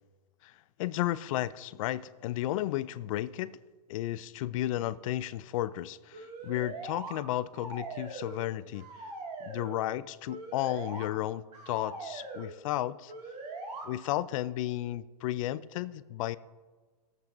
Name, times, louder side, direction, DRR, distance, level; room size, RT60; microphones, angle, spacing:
voice 1, 0.4-3.5 3.9-9.1 9.4-13.1 13.8-16.4, left 14 dB, 55° left, 0.4 m, -33 dB
sound 1, 6.1-7.2 7.5-8.5 8.7-9.8 10.3-11.1 11.5-12.5 13.1-13.9, right 3 dB, 75° right, 2.1 m, -41 dB
20.0 x 7.4 x 2.6 m
hypercardioid pair, 140°, 21 cm